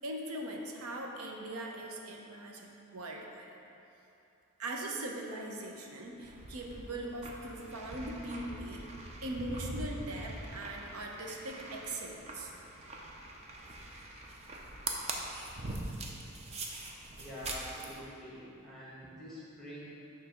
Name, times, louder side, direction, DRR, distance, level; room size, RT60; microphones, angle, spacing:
voice 1, 0.0-3.5 4.6-8.9 9.2-12.5, right 1 dB, 85° right, 1 dB, 0.7 m, -40 dB
sound 1, 6.2-18.0, right 2 dB, 30° right, 0.5 m, -43 dB
voice 2, 17.2-19.9, equal, ahead, -8 dB, 1.4 m, -46 dB
6.4 x 3.3 x 5.5 m, 2.8 s
head